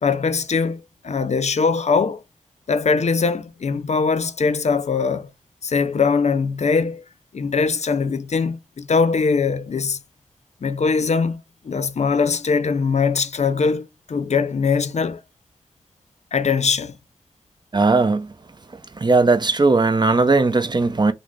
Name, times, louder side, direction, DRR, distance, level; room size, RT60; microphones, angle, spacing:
voice 1, 0.0-2.2 2.7-5.3 5.6-7.0 7.3-10.0 10.6-11.4 11.6-15.2 16.3-16.9, left 5 dB, 60° left, 0.5 m, -21 dB
voice 2, 17.7-18.3 18.9-21.1, right 3 dB, 35° right, 0.5 m, -17 dB
3.6 x 2.0 x 3.3 m
cardioid pair, 45°, 13 cm